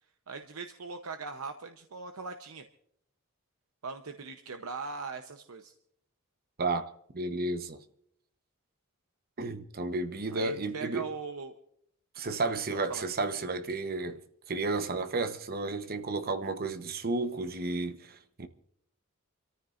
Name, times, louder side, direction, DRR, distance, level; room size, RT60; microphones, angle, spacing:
voice 1, 0.3-2.7 3.8-5.7 10.3-11.6 12.4-12.6 12.9-13.0, right 4 dB, 85° right, 0.8 m, -40 dB
voice 2, 6.6-7.8 9.4-11.1 12.2-14.2 14.5-18.5, right 3 dB, 45° right, 1.0 m, -32 dB
29.5 x 14.0 x 2.5 m
head